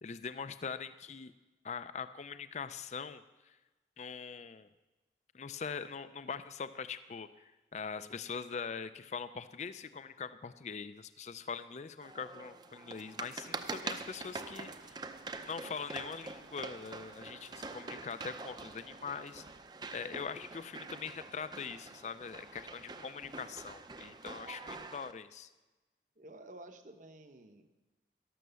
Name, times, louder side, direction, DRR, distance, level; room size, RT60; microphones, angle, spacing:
voice 1, 0.0-1.3 1.6-3.6 4.0-4.7 5.3-15.0 15.5-19.4 19.9-25.5, left 6 dB, 40° left, 13 dB, 0.4 m, -42 dB
sound 1, 12.0-25.1, right 3 dB, 25° right, 0.6 m, -45 dB
sound 2, 13.4-19.6, right 4 dB, 85° right, 1.0 m, -61 dB
voice 2, 26.2-27.7, right 1 dB, 45° right, 7 dB, 0.9 m, -52 dB
12.5 x 12.0 x 6.9 m, 1.2 s
head